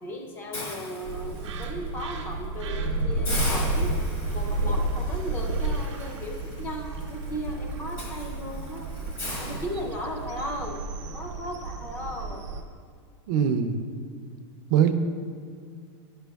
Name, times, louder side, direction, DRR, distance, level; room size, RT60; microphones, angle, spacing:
voice 1, 0.0-4.0 4.3-8.9 9.3-10.8 11.1-12.5, equal, 15° left, 2 dB, 0.5 m, -36 dB
Hiss, 0.5-1.6 2.1-2.3 2.7-2.8 3.2-10.3, left 2 dB, 40° left, 1.3 m, -38 dB
sound 1, 1.0-12.6, right 2 dB, 90° right, 0.8 m, -31 dB
voice 2, 13.3-13.9 14.7-14.9, right 8 dB, 45° right, 8 dB, 0.4 m, -22 dB
9.9 x 6.1 x 2.3 m, 2.1 s
supercardioid pair, 165°, 15 cm